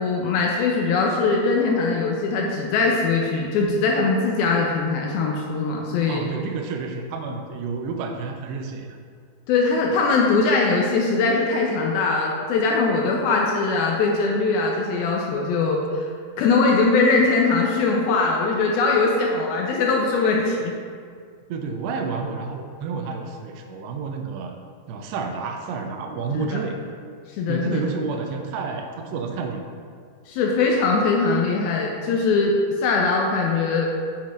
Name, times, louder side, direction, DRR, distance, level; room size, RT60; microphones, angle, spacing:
voice 1, 0.0-6.3 9.5-16.1 16.4-20.8 26.4-26.6 27.3-27.8 30.3-33.9, left 4 dB, 80° left, -1 dB, 2.3 m, -21 dB
voice 2, 6.1-9.0 21.5-24.6 24.9-26.7 27.5-29.6, right 4 dB, 90° right, 4 dB, 2.8 m, -30 dB
7.6 x 7.2 x 2.5 m, 2.1 s
omnidirectional pair, 4.6 m